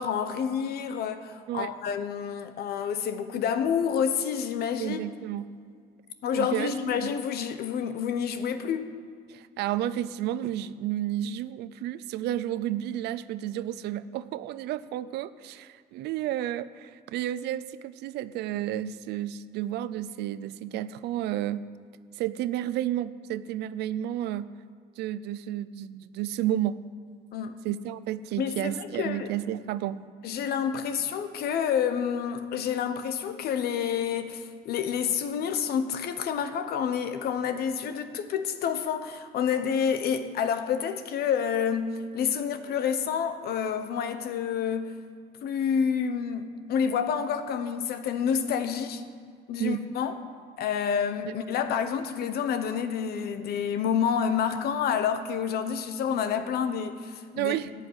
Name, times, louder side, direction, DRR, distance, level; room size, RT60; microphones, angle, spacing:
voice 1, 0.0-5.0 6.2-8.9 27.3-27.6 28.4-29.3 30.2-45.0 45.4-49.0 49.5-50.2 50.6-57.5, left 7 dB, 70° left, 1.1 m, -28 dB
voice 2, 4.8-5.5 6.3-7.1 9.3-21.7 22.1-24.5 25.0-26.8 27.6-30.0 49.6-49.8 51.3-51.4 57.3-57.7, right 12 dB, 80° right, 0.6 m, -31 dB
14.0 x 5.7 x 9.7 m
cardioid pair, 110°, 17 cm